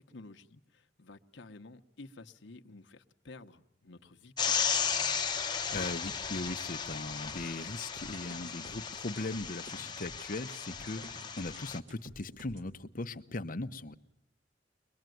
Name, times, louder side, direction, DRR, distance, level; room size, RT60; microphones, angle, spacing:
voice 1, 0.0-4.7 10.8-11.1, left 2 dB, 85° left, 5 dB, 1.0 m, -52 dB
sound 1, 4.4-11.8, left 6 dB, 25° left, 1.1 m, -35 dB
voice 2, 5.7-13.9, left 2 dB, 50° left, 8 dB, 0.9 m, -39 dB
sound 2, 7.3-12.7, equal, 85° right, 4.5 m, -52 dB
23.0 x 21.0 x 9.2 m, 0.81 s
head